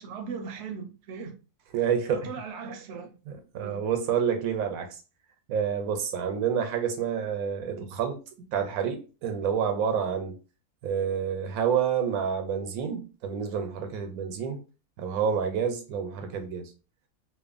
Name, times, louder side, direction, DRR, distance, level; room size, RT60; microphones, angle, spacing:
voice 1, 0.0-1.4 1.7-1.8 2.1-3.2 3.6-3.8, right 5 dB, 65° right, 0.8 m, -38 dB
voice 2, 1.7-2.3 3.3-5.0 5.5-8.2 8.5-10.4 10.8-14.6 15.0-16.7, right 7 dB, 85° right, 1.0 m, -28 dB
2.9 x 2.1 x 2.4 m
omnidirectional pair, 1.5 m